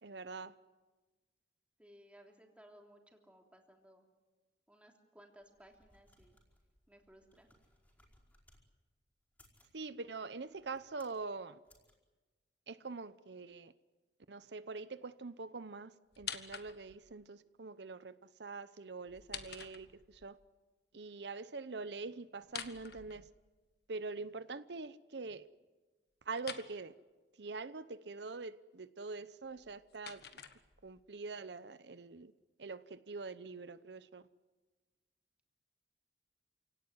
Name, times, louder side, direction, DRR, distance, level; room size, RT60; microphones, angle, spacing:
voice 1, 0.0-0.5 9.7-11.6 12.7-13.7 14.3-18.1 18.4-20.4 20.9-23.3 23.9-25.5 26.3-26.9 27.4-30.2 30.8-32.3 32.6-34.2, right 4 dB, 70° right, 14 dB, 0.8 m, -44 dB
voice 2, 1.8-4.0 4.7-6.4 6.9-7.5, equal, 5° right, 2 dB, 3.3 m, -60 dB
sound 1, 5.4-8.6 9.2-9.8 10.5-11.2 11.6-11.9, left 1 dB, 10° left, 5.0 m, -68 dB
sound 2, 16.1-17.1 19.1-20.3 22.4-23.7 26.4-26.7 29.4-31.1, left 8 dB, 65° left, 1.5 m, -47 dB
28.5 x 18.0 x 9.7 m, 1.2 s
head